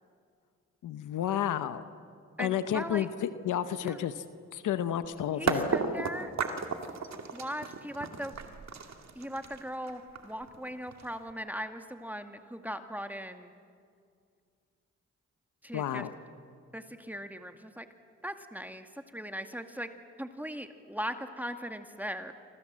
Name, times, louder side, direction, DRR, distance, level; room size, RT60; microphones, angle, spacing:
voice 1, 0.8-1.8 2.4-4.2 4.5-5.7 15.7-16.1, left 10 dB, 90° left, 11 dB, 1.0 m, -31 dB
voice 2, 2.4-3.1 3.8-4.0 5.4-6.3 7.3-8.3 9.2-13.5 15.6-16.1 16.7-17.9 18.2-19.9 20.2-22.3, equal, 5° right, 7 dB, 2.1 m, -39 dB
sound 1, 5.0-5.1 5.5-11.3, right 5 dB, 65° right, 2.4 m, -34 dB
28.0 x 25.5 x 7.5 m, 2.2 s
cardioid pair, 55°, 30 cm